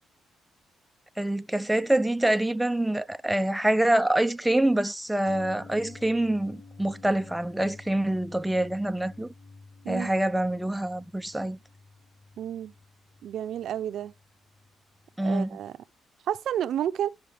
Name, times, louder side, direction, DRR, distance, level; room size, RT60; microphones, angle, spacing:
voice 1, 1.2-9.3 9.9-11.6 15.2-15.5, right 1 dB, 5° right, 0.4 m, -26 dB
sound 1, 5.3-15.1 15.4-15.5, left 3 dB, 30° left, 6.5 m, -50 dB
voice 2, 12.4-12.7 13.2-14.1 15.2-15.8 16.3-17.1, right 10 dB, 70° right, 0.6 m, -30 dB
11.5 x 5.1 x 3.4 m
cardioid pair, 90°, 0 cm